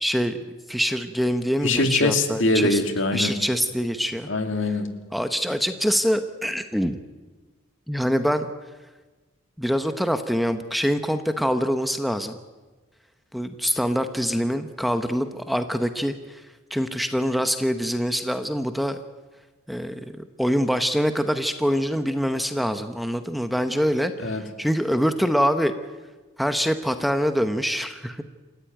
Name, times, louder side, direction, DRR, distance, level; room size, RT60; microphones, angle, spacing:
voice 1, 0.0-0.4 0.7-2.8 3.1-4.3 5.1-7.0 7.9-8.5 9.6-12.4 13.3-16.4 16.7-19.0 19.7-25.7 26.4-28.2, equal, ahead, 8 dB, 0.9 m, -24 dB
voice 2, 1.6-3.4 4.3-4.9 24.2-24.4, left 2 dB, 60° left, 6 dB, 2.5 m, -23 dB
28.0 x 15.0 x 9.3 m, 1.3 s
head